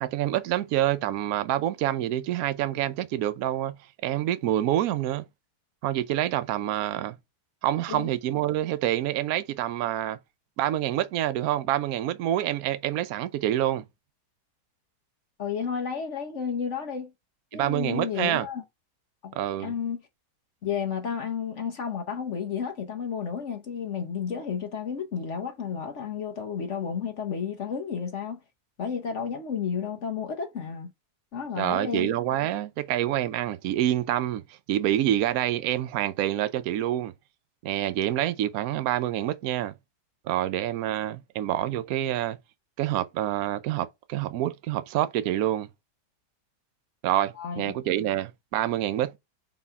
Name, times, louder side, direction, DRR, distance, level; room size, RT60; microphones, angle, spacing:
voice 1, 0.0-5.2 5.8-7.2 7.6-10.2 10.6-13.9 17.5-18.5 19.3-19.7 31.6-34.4 34.7-37.1 37.6-39.7 40.3-42.4 42.8-45.7 47.0-49.1, right 12 dB, 70° right, 1.0 m, -27 dB
voice 2, 15.4-17.1 17.5-18.6 19.2-20.0 20.6-28.4 28.8-30.9 31.3-32.1 47.4-47.8, left 7 dB, 50° left, 1.1 m, -32 dB
4.2 x 4.0 x 5.5 m
omnidirectional pair, 1.8 m